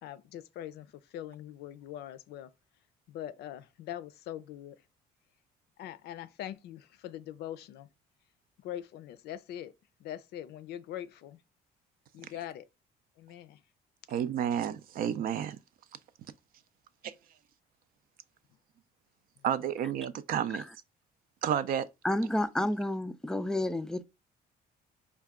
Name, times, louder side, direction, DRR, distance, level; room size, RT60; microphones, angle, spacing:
voice 1, 0.0-2.5 3.1-4.8 5.8-7.9 8.6-9.7 10.0-11.4 12.1-12.7 13.2-13.6, left 11 dB, 75° left, 0.4 m, -42 dB
voice 2, 14.1-15.6 19.4-20.6 21.4-21.9, right 9 dB, 60° right, 0.4 m, -30 dB
voice 3, 22.0-24.0, left 1 dB, 5° left, 0.3 m, -30 dB
4.5 x 2.3 x 3.6 m
cardioid pair, 110°, 17 cm